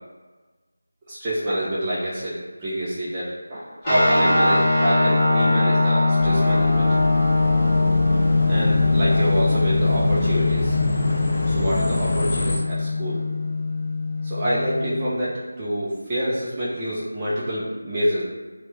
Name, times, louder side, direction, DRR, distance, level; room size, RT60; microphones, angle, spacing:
voice 1, 1.1-6.9 8.5-10.8 11.4-13.2 14.2-18.2, equal, 20° right, -9 dB, 0.5 m, -27 dB
sound 1, 3.8-15.0, left 3 dB, 15° left, 0.9 m, -21 dB
sound 2, 6.2-12.6, left 1 dB, 45° left, 0.4 m, -26 dB
2.9 x 2.2 x 3.1 m, 1.3 s
figure-of-eight pair, 165°, 0 cm